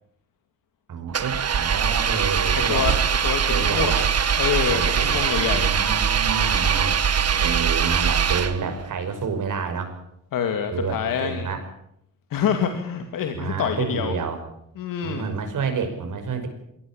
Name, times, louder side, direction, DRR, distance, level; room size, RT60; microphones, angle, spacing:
voice 1, 0.9-2.9 3.5-4.1 4.7-5.2 5.5-7.0 7.4-9.9 10.7-11.6 13.3-14.4 15.0-16.5, right 5 dB, 70° right, 6 dB, 5.7 m, -29 dB
Engine, 1.1-8.9, right 7 dB, 50° right, 1.5 m, -22 dB
voice 2, 2.7-4.0 4.4-5.7 10.3-11.5 12.3-14.1 14.8-15.2, left 7 dB, 80° left, 6 dB, 2.4 m, -26 dB
23.0 x 17.5 x 8.8 m, 0.78 s
cardioid pair, 85°, 33 cm